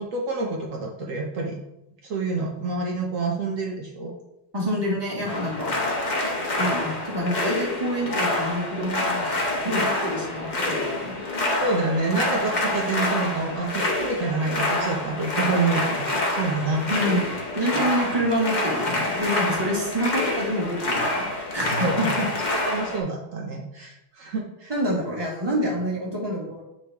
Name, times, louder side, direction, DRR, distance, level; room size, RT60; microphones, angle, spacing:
voice 1, 0.0-1.6 2.0-4.1 11.6-17.0 17.6-17.8 21.7-24.7, right 3 dB, 85° right, 0 dB, 0.7 m, -28 dB
voice 2, 4.5-5.8 6.6-11.2 16.9-22.3 24.7-26.6, equal, 15° right, -3 dB, 1.1 m, -27 dB
sound 1, 5.3-23.0, left 2 dB, 55° left, 0.4 m, -27 dB
8.6 x 3.3 x 3.4 m, 0.87 s
omnidirectional pair, 2.3 m